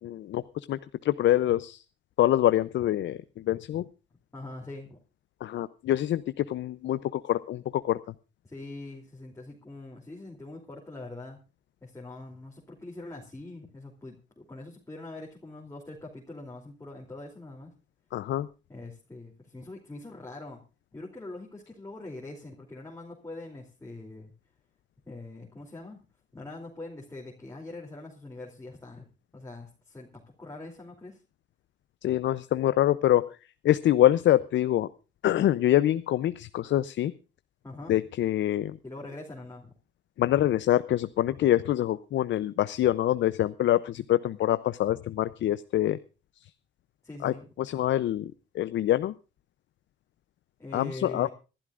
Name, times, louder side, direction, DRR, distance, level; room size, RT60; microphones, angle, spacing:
voice 1, 0.0-1.8 2.2-3.8 5.4-8.0 18.1-18.5 32.0-33.3 33.6-34.9 35.2-37.1 37.9-38.8 40.2-46.0 47.2-49.1 50.7-51.3, left 13 dB, 70° left, 14 dB, 0.6 m, -25 dB
voice 2, 4.3-5.0 8.4-11.4 11.8-17.7 18.7-20.6 20.9-24.3 25.0-26.0 26.3-29.0 29.3-30.1 30.4-31.2 37.6-38.0 38.8-39.7 47.0-47.5 50.6-51.3, left 2 dB, 15° left, -2 dB, 2.9 m, -43 dB
25.5 x 12.0 x 2.5 m, 0.31 s
cardioid pair, 85°, 20 cm